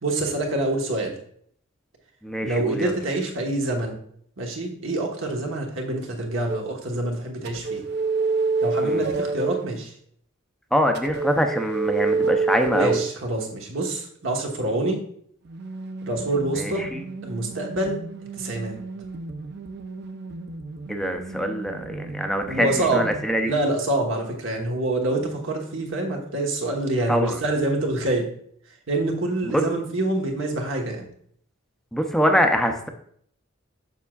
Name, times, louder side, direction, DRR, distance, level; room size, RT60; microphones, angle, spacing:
voice 1, 0.0-1.1 2.4-4.0 4.4-7.8 8.6-9.9 12.7-15.0 16.0-16.9 17.2-18.0 18.4-18.8 22.5-23.1 23.4-28.3 28.9-31.1, right 2 dB, 75° right, 1 dB, 1.2 m, -26 dB
voice 2, 2.2-2.9 8.8-9.0 10.7-13.0 16.6-17.0 20.9-23.5 27.1-27.4 29.5-29.6 31.9-32.9, equal, ahead, 4 dB, 0.5 m, -24 dB
sound 1, 6.5-6.7 7.4-9.7 10.9-13.1 15.4-23.3, right 4 dB, 55° right, 0.5 m, -29 dB
6.9 x 6.0 x 2.3 m, 0.65 s
head